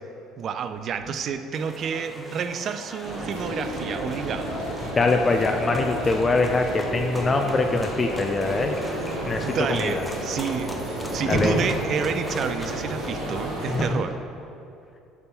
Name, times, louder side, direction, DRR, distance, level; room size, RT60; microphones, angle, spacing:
voice 1, 0.4-4.5 9.4-10.7 11.1-14.2, right 6 dB, 55° right, 9 dB, 0.4 m, -29 dB
sound 1, 0.7-13.9, left 1 dB, 55° left, 1.5 m, -39 dB
sound 2, 1.5-13.9, left 1 dB, 5° left, 0.7 m, -42 dB
sound 3, 3.0-13.9, right 1 dB, 80° right, 1.5 m, -32 dB
voice 2, 4.8-8.8 9.3-10.0 11.3-11.6 13.7-14.0, left 3 dB, 30° left, 4 dB, 0.4 m, -23 dB
6.5 x 3.5 x 5.6 m, 2.7 s
hypercardioid pair, 70°, 0 cm